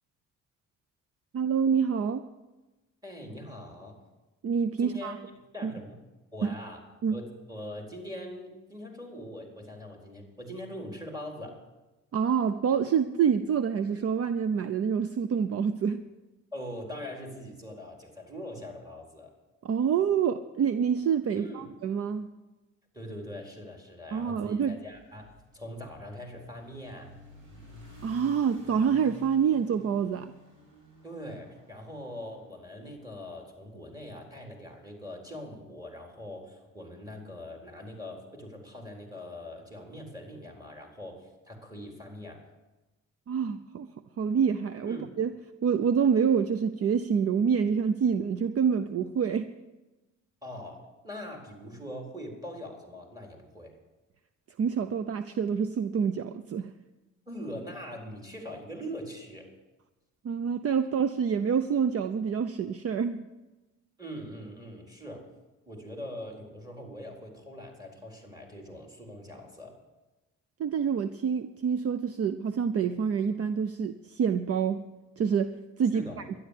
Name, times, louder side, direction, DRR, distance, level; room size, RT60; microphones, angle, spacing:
voice 1, 1.3-2.2 4.4-5.2 5.6-5.7 6.4-6.5 7.0-7.2 12.1-16.0 19.6-22.3 24.1-24.8 28.0-30.3 43.3-43.9 44.2-45.3 45.6-49.5 54.6-56.7 60.2-63.3 70.6-74.9 75.2-76.0, right 7 dB, 50° right, 12 dB, 0.7 m, -27 dB
voice 2, 3.0-4.0 4.8-5.2 5.5-6.0 6.3-6.8 7.1-11.6 16.5-19.3 21.3-21.7 22.9-27.1 31.0-42.4 44.9-45.1 50.4-53.8 57.3-59.5 64.0-65.3 65.7-69.8 75.9-76.2, equal, 10° right, 1 dB, 4.2 m, -42 dB
sound 1, 24.8-33.1, equal, 80° right, 6.7 m, -52 dB
12.5 x 11.0 x 8.4 m, 1.1 s
cardioid pair, 90°, 30 cm